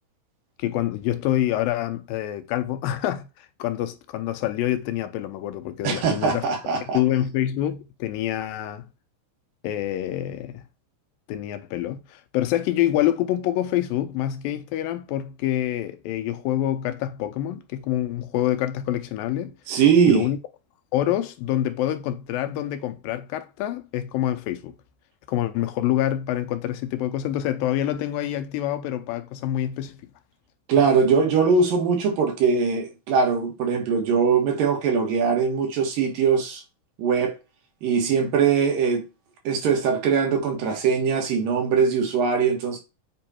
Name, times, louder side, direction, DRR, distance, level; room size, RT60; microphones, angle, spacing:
voice 1, 0.6-6.5 6.8-8.8 9.6-10.6 11.3-19.5 20.1-20.4 20.9-24.8 25.3-30.0, left 12 dB, 80° left, 2.4 m, -26 dB
voice 2, 5.8-7.0 19.7-20.3 30.7-36.6 37.0-37.4 37.8-39.0 39.4-42.8, right 6 dB, 75° right, 3.1 m, -21 dB
7.8 x 3.0 x 4.3 m
omnidirectional pair, 4.1 m